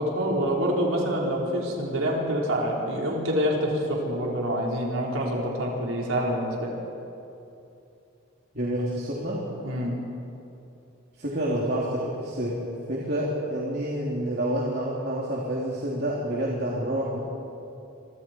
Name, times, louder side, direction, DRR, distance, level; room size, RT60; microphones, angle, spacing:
voice 1, 0.0-6.7 9.6-9.9, equal, 75° right, -3 dB, 4.6 m, -26 dB
voice 2, 8.5-9.4 11.2-12.5 12.9-17.2, right 1 dB, 50° right, -5 dB, 3.3 m, -28 dB
28.0 x 25.5 x 4.6 m, 2.7 s
head